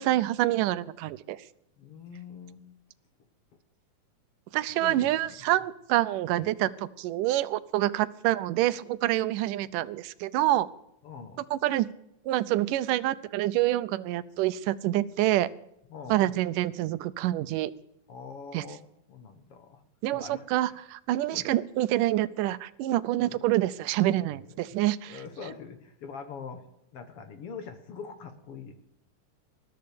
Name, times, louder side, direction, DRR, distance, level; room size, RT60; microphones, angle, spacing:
voice 1, 0.0-1.4 4.5-10.7 11.5-11.9 12.3-15.5 16.1-17.7 18.5-18.6 20.0-25.2, right 15 dB, 90° right, 16 dB, 2.3 m, -27 dB
voice 2, 1.8-2.7 4.8-5.3 11.0-11.5 15.9-16.4 18.1-18.8 19.1-19.8 20.1-20.8 21.3-21.5 23.0-23.4 24.5-24.6 25.0-26.6 26.9-28.8, left 5 dB, 55° left, 8 dB, 2.0 m, -43 dB
20.5 x 13.5 x 5.2 m, 0.82 s
omnidirectional pair, 3.7 m